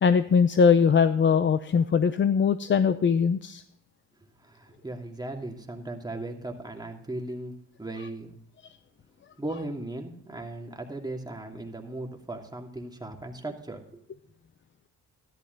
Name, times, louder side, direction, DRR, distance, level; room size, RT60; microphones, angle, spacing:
voice 1, 0.0-3.6, left 6 dB, 35° left, 12 dB, 0.6 m, -21 dB
voice 2, 4.4-8.3 9.4-14.0, right 2 dB, 10° right, 2 dB, 2.5 m, -37 dB
13.5 x 12.0 x 4.0 m, 0.69 s
cardioid pair, 80°, 33 cm